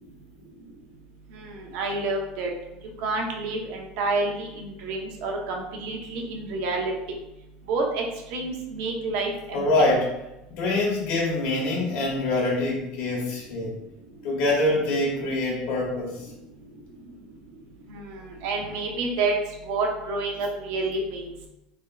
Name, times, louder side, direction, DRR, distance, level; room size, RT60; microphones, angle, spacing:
voice 1, 1.3-2.5 3.0-6.9 7.7-8.0 8.3-9.6 17.9-19.3 19.6-21.3, right 3 dB, 70° right, 0 dB, 0.9 m, -29 dB
voice 2, 9.5-10.1 10.5-13.7 14.2-16.2, left 2 dB, 55° left, -3 dB, 1.5 m, -24 dB
4.5 x 3.5 x 2.3 m, 0.91 s
cardioid pair, 165°, 3 cm